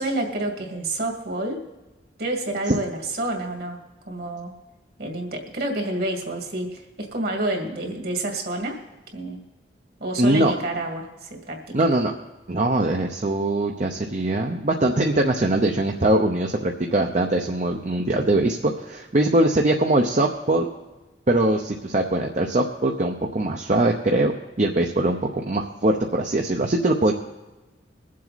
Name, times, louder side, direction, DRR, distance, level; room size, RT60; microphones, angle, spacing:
voice 1, 0.0-1.6 2.2-3.8 4.1-4.5 5.0-8.8 9.1-9.4 10.0-11.8, right 2 dB, 60° right, 2 dB, 2.3 m, -28 dB
voice 2, 10.2-10.5 11.7-12.1 12.5-20.7 21.3-24.3 24.6-27.1, right 1 dB, 40° right, 2 dB, 0.8 m, -22 dB
22.5 x 7.6 x 4.1 m, 1.1 s
head